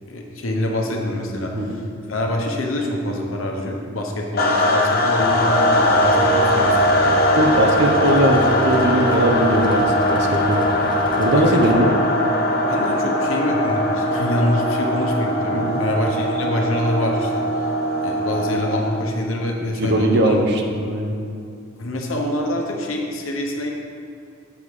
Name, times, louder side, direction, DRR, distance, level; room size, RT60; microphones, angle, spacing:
voice 1, 0.1-6.9 11.3-11.8 12.7-17.3 17.6-17.7 18.0-20.4 21.8-23.7, left 1 dB, 70° left, 0 dB, 1.0 m, -25 dB
voice 2, 1.5-1.8 7.4-10.7 11.2-11.9 15.5-15.8 19.6-21.2, right 1 dB, 55° right, 3 dB, 0.8 m, -19 dB
sound 1, 4.4-19.1, left 1 dB, 45° left, 0.8 m, -20 dB
Mechanical fan, 5.2-11.8, equal, 20° left, 0.5 m, -31 dB
7.1 x 4.9 x 5.4 m, 2.5 s
head